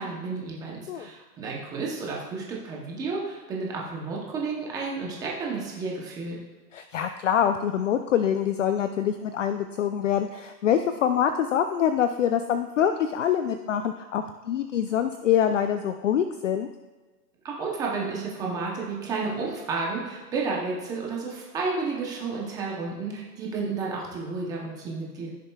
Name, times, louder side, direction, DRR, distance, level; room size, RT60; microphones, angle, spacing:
voice 1, 0.0-6.4 17.4-25.3, right 4 dB, 10° right, -2 dB, 0.7 m, -31 dB
voice 2, 6.7-16.7, left 9 dB, 50° left, 9 dB, 0.5 m, -25 dB
15.5 x 6.6 x 2.3 m, 1.3 s
hypercardioid pair, 150°, 50 cm